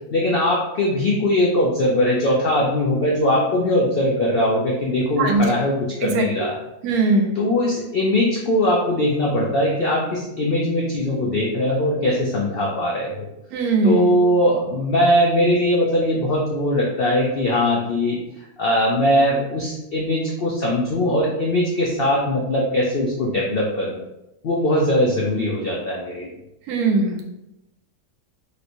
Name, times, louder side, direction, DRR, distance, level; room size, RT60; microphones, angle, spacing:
voice 1, 0.1-6.6 7.4-13.2 13.8-24.0 24.4-26.3, left 1 dB, 75° left, -3 dB, 0.5 m, -20 dB
voice 2, 6.0-6.5 6.8-7.3 13.5-14.1 26.7-27.3, right 3 dB, 80° right, 2 dB, 1.0 m, -20 dB
3.1 x 2.9 x 2.6 m, 0.89 s
omnidirectional pair, 1.6 m